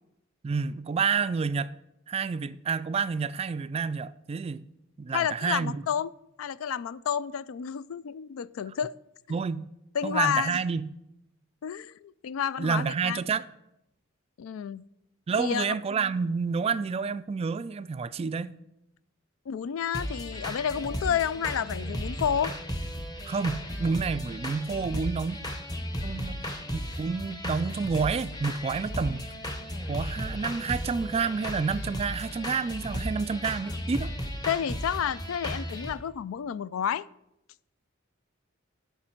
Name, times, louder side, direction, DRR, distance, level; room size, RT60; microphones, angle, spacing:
voice 1, 0.4-1.7 2.1-4.6 5.0-5.8 9.3-9.7 10.0-10.9 12.6-13.5 15.3-18.5 23.3-25.4 26.0-26.4 26.7-29.2 29.9-34.1, right 5 dB, 30° right, 0.3 m, -29 dB
voice 2, 5.1-6.1 6.4-8.9 9.3-9.4 9.9-10.6 11.6-13.2 14.4-14.8 15.4-15.8 19.5-22.5 34.5-37.1, left 8 dB, 80° left, 0.4 m, -30 dB
sound 1, 19.9-35.9, equal, 20° left, 1.0 m, -35 dB
12.5 x 5.8 x 4.5 m
head